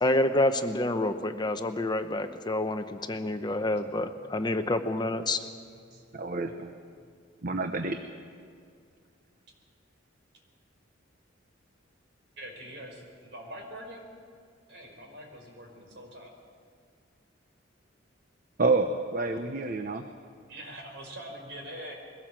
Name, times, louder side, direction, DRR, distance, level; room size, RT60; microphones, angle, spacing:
voice 1, 0.0-5.4, left 1 dB, 25° left, 8 dB, 0.8 m, -28 dB
voice 2, 4.0-4.7 5.9-6.0 12.4-14.1 14.7-16.3 20.5-21.9, right 1 dB, 65° right, 1 dB, 4.9 m, -45 dB
voice 3, 6.1-6.7 7.4-8.0 18.6-20.1, right 3 dB, 45° right, 6 dB, 0.9 m, -28 dB
22.0 x 17.5 x 7.5 m, 2.2 s
head